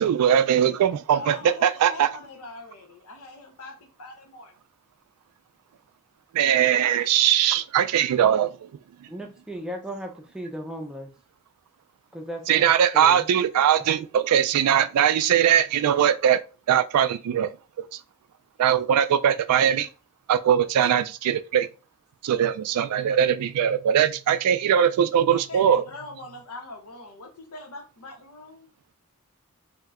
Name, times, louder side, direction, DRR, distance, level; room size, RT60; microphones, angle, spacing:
voice 1, 0.0-1.4 1.6-2.1 6.3-8.5 12.5-16.4 16.7-17.5 18.6-19.9 20.3-21.7 22.2-25.8, right 9 dB, 85° right, 0.3 m, -21 dB
voice 2, 1.1-4.5 25.3-28.7, left 2 dB, 90° left, 0.8 m, -42 dB
voice 3, 9.1-11.1 12.1-13.2 13.9-14.0, equal, 5° right, 0.5 m, -36 dB
2.7 x 2.1 x 3.5 m
head